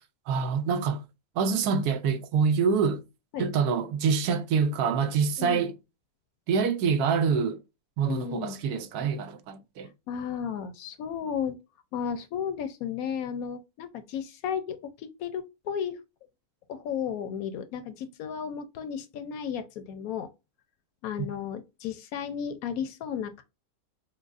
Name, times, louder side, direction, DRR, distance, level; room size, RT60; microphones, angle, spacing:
voice 1, 0.3-1.0 1.4-3.0 3.4-5.7 6.5-7.6 8.0-9.9 21.2-21.3, right 6 dB, 80° right, 1.1 m, -26 dB
voice 2, 8.0-8.6 10.1-11.6 11.9-15.9 16.7-20.3 21.0-23.4, left 8 dB, 70° left, 1.0 m, -34 dB
4.6 x 2.2 x 2.4 m
omnidirectional pair, 1.7 m